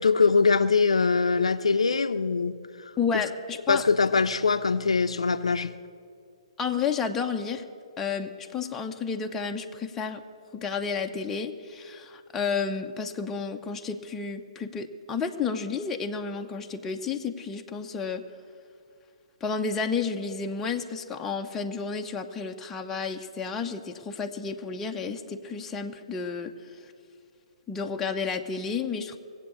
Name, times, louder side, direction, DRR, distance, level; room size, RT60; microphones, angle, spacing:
voice 1, 0.0-2.6 3.1-3.2 3.7-5.7, left 4 dB, 80° left, 0.6 m, -22 dB
voice 2, 3.0-3.8 6.6-7.6 8.0-10.2 10.5-18.2 19.4-26.9 27.7-29.2, left 5 dB, 15° left, 0.9 m, -31 dB
19.0 x 8.1 x 8.4 m
figure-of-eight pair, 130°, 3 cm